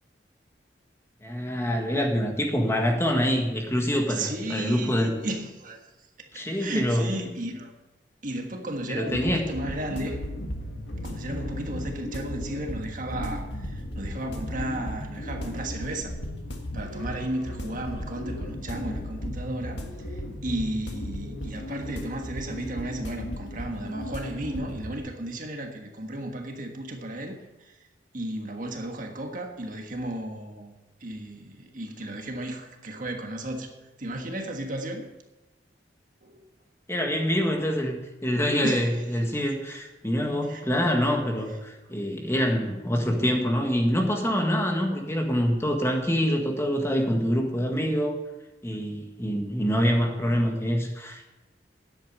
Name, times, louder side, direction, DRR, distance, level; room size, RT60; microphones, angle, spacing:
voice 1, 1.2-5.1 6.3-7.1 8.9-9.5 36.9-48.2 48.6-51.3, equal, 15° left, 2 dB, 1.7 m, -25 dB
voice 2, 4.1-5.9 6.2-7.7 8.2-10.2 11.0-16.1 16.7-27.8 28.1-30.7 31.0-33.7 34.0-35.1 36.2-36.4 38.6-38.9 40.5-40.6, right 1 dB, 50° right, 3 dB, 1.5 m, -34 dB
sound 1, 9.1-25.0, left 1 dB, 80° left, 1.7 m, -35 dB
10.0 x 8.4 x 8.0 m, 1.1 s
head